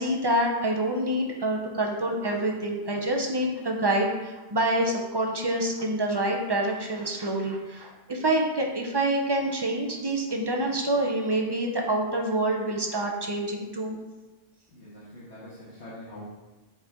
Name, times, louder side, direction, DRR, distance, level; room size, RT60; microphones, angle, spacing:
voice 1, 0.0-14.0, right 1 dB, 25° right, 1 dB, 0.7 m, -27 dB
voice 2, 14.7-16.2, left 1 dB, 65° left, -9 dB, 1.8 m, -44 dB
7.6 x 4.4 x 3.8 m, 1.1 s
omnidirectional pair, 1.2 m